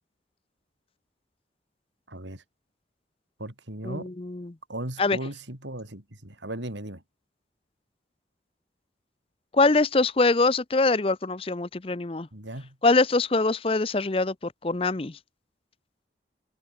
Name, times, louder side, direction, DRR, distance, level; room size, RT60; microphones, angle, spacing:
voice 1, 2.1-2.4 3.4-4.1 4.7-7.0 12.3-12.8, right 1 dB, 90° right, 6.3 m, -37 dB
voice 2, 3.8-4.5 5.0-5.2 9.5-12.3 12.8-15.2, left 3 dB, 30° left, 0.6 m, -23 dB
head